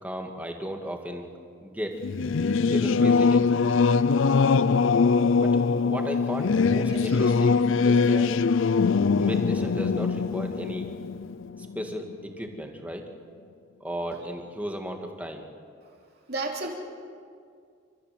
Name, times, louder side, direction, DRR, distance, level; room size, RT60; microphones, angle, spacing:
voice 1, 0.0-1.3 1.6-2.0 2.6-3.5 5.3-8.3 9.2-10.9 11.8-13.1 13.8-15.4, equal, 5° right, 3 dB, 1.9 m, -35 dB
Singing / Musical instrument, 2.0-12.1, left 4 dB, 65° left, 0.5 m, -22 dB
voice 2, 16.3-16.7, right 2 dB, 50° right, 0 dB, 3.2 m, -33 dB
30.0 x 15.0 x 7.8 m, 2.2 s
head